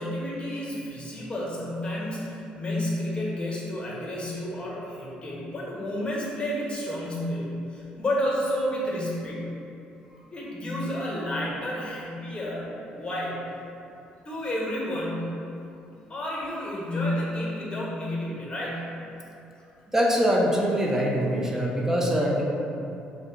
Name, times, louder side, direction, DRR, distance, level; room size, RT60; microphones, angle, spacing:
voice 1, 0.0-9.5 10.3-13.4 14.2-15.4 16.1-18.8, left 1 dB, 25° left, -5 dB, 1.0 m, -30 dB
voice 2, 19.9-22.4, equal, 15° right, -3 dB, 0.6 m, -23 dB
2.6 x 2.2 x 3.8 m, 2.7 s
supercardioid pair, 65°, 4 cm